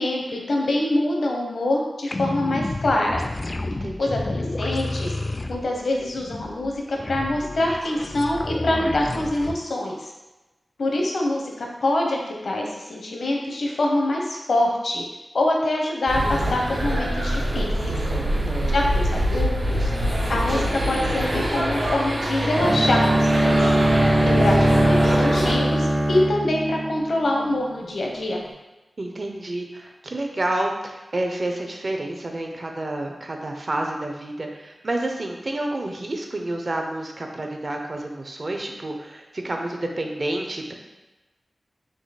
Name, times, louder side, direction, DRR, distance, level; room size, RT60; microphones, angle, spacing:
voice 1, 0.0-3.2 4.0-5.1 5.5-10.1 10.8-15.0 15.3-18.0 18.7-19.9 20.3-23.7 24.2-28.4, left 1 dB, 75° left, 0 dB, 0.7 m, -25 dB
sound 1, 2.1-9.5, left 2 dB, 40° left, 0.3 m, -30 dB
voice 2, 3.7-4.2 18.1-18.9 19.3-19.4 29.0-40.7, right 1 dB, 50° right, 2 dB, 0.6 m, -29 dB
sound 2, 16.1-25.5, equal, 65° right, 1.3 m, -24 dB
Bowed string instrument, 22.6-27.5, right 1 dB, 90° right, 1.3 m, -21 dB
3.7 x 2.9 x 4.1 m, 1.1 s
wide cardioid pair, 65°, 0 cm